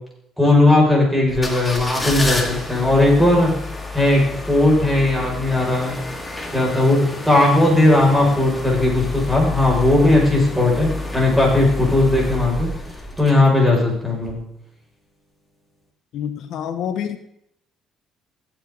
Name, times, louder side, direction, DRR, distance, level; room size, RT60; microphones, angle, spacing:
voice 1, 0.4-3.5 3.9-4.2 4.5-6.0 6.5-7.0 7.2-12.7 13.2-14.4, left 2 dB, 5° right, -3 dB, 5.8 m, -17 dB
sound 1, 1.3-13.8 14.2-14.3, left 2 dB, 15° left, 2.2 m, -29 dB
voice 2, 16.1-17.2, left 9 dB, 70° left, 10 dB, 1.0 m, -27 dB
16.0 x 8.3 x 3.9 m, 0.73 s
supercardioid pair, 80°, 0 cm